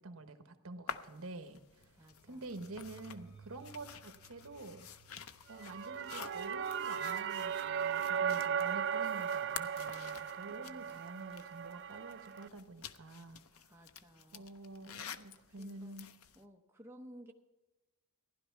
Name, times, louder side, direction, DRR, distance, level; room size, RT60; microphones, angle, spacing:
voice 1, 0.0-4.9 5.5-13.4 14.3-16.1, right 2 dB, 70° right, 8 dB, 1.2 m, -48 dB
sound 1, 0.9-16.4, left 7 dB, 75° left, 0.7 m, -51 dB
sound 2, 1.8-11.6, right 4 dB, 45° left, 3.2 m, -62 dB
voice 2, 1.9-2.4 10.6-11.0 13.7-14.5 15.5-16.1 16.3-17.3, equal, 10° right, 1 dB, 0.8 m, -56 dB
sound 3, 5.5-12.5, right 8 dB, 50° right, 0.4 m, -37 dB
15.5 x 11.0 x 4.6 m, 1.2 s
head